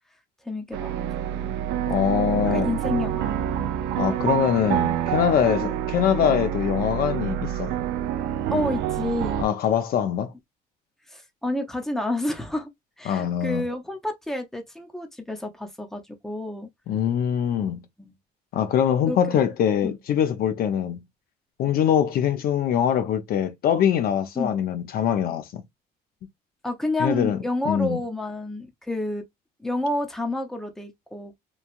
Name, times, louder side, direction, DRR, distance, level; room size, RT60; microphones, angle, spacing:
voice 1, 0.5-0.9 1.3-1.6 2.5-3.4 5.6-5.7 8.5-9.4 11.1-12.7 13.0-16.7 18.0-18.1 19.1-19.4 19.8-20.0 24.4-24.5 26.6-29.2 29.6-31.4, left 2 dB, ahead, 0.7 m, -29 dB
sound 1, 0.7-9.4, right 11 dB, 85° right, 0.5 m, -27 dB
voice 2, 1.9-2.7 4.0-7.7 9.4-10.3 13.1-13.7 16.9-17.8 18.5-21.0 21.6-25.6 27.0-27.4 27.7-28.0, left 9 dB, 60° left, 0.5 m, -23 dB
3.1 x 2.3 x 2.4 m
cardioid pair, 110°, 17 cm